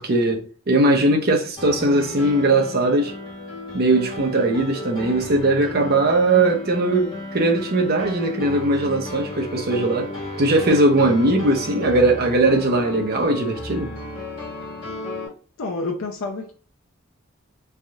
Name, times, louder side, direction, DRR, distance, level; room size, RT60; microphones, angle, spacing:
voice 1, 0.0-3.1 3.7-10.1 10.4-13.9, right 2 dB, 50° right, 0.6 m, -19 dB
Piano, 1.6-15.3, left 2 dB, 25° left, 1.2 m, -34 dB
voice 2, 15.6-16.5, left 3 dB, 75° left, 0.5 m, -28 dB
3.4 x 2.6 x 2.3 m
head